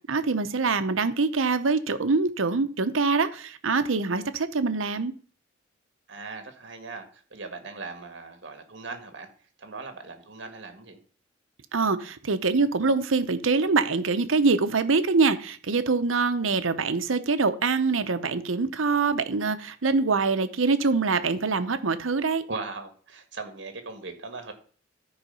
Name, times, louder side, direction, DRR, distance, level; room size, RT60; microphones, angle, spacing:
voice 1, 0.1-5.1 11.7-22.5, right 4 dB, 85° right, 0.8 m, -24 dB
voice 2, 6.1-9.3 9.6-11.0 22.5-24.5, right 3 dB, 60° right, 1.7 m, -39 dB
13.0 x 4.8 x 5.5 m
head